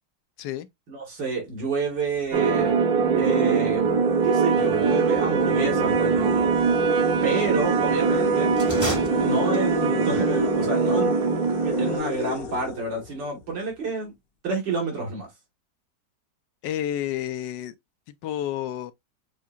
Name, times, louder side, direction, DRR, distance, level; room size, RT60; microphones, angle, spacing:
voice 1, 0.9-2.7 3.1-3.9 4.2-6.5 7.2-8.5 9.2-11.1 11.5-14.1 14.4-15.3, right 4 dB, 90° right, 2.9 m, -29 dB
sound 1, 2.3-2.4 3.2-3.3 3.8-13.5, left 6 dB, 70° left, 0.5 m, -34 dB
sound 2, 2.3-12.0, right 5 dB, 60° right, 1.1 m, -22 dB
sound 3, 8.5-9.9, right 1 dB, 15° right, 0.8 m, -32 dB
voice 2, 16.6-17.7 18.2-18.9, left 11 dB, 85° left, 1.3 m, -30 dB
7.2 x 2.8 x 2.4 m
omnidirectional pair, 1.9 m